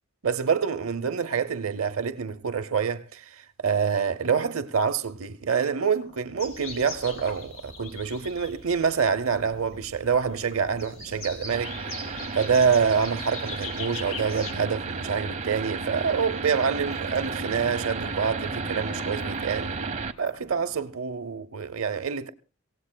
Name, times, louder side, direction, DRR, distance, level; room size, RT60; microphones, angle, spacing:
voice 1, 0.2-11.8 12.3-19.8 20.2-22.3, right 6 dB, 80° right, 0.7 m, -26 dB
sound 1, 5.8-7.9 8.8-9.0 9.3-11.4 11.8-13.4 13.9-14.0 14.2-15.7 16.4-16.5 16.8-18.1 18.4-19.6 20.2-21.0, equal, 45° left, 2.5 m, -48 dB
sound 2, 6.4-14.5, left 3 dB, 80° left, 3.3 m, -41 dB
sound 3, 11.5-20.1, right 4 dB, 35° right, 0.8 m, -33 dB
24.0 x 17.0 x 2.2 m
head